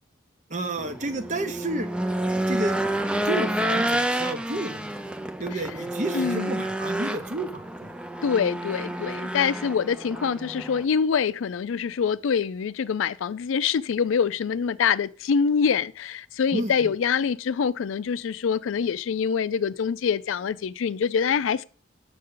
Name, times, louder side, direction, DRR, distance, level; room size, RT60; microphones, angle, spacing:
voice 1, 0.5-1.9 2.5-2.8 3.2-4.8 5.4-8.0 16.5-16.9, right 2 dB, 40° right, 0.8 m, -31 dB
Race car auto racing / Engine, 0.8-10.9, right 1 dB, 5° right, 0.4 m, -29 dB
voice 2, 6.1-6.6 8.2-21.6, left 6 dB, 85° left, 0.4 m, -25 dB
7.8 x 6.6 x 3.7 m
head